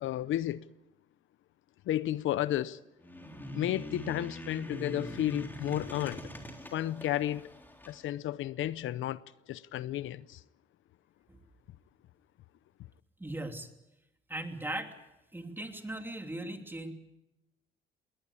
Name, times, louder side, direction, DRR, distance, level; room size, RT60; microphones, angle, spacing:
voice 1, 0.0-0.6 1.9-2.8 3.5-6.2 6.7-7.5 7.9-9.2 9.5-10.4, left 13 dB, 80° left, 0.7 m, -32 dB
sound 1, 3.0-8.0, equal, 10° left, 3.6 m, -43 dB
voice 2, 13.2-13.7 14.3-14.9 15.3-16.9, right 1 dB, 10° right, 3.0 m, -38 dB
21.5 x 18.5 x 8.4 m
cardioid pair, 90°, 20 cm